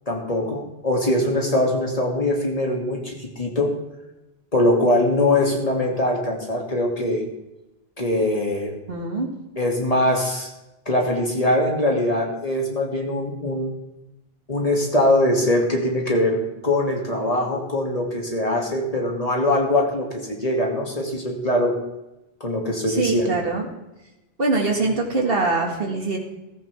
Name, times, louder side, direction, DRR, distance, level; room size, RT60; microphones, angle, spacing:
voice 1, 0.1-3.7 4.5-7.2 8.0-8.8 9.6-10.5 10.9-13.7 14.5-21.8 22.4-23.4, left 1 dB, 35° left, 0 dB, 2.8 m, -22 dB
voice 2, 8.9-9.3 22.9-23.7 24.4-26.2, right 3 dB, 65° right, 1 dB, 2.4 m, -23 dB
15.0 x 14.0 x 3.6 m, 0.97 s
omnidirectional pair, 1.0 m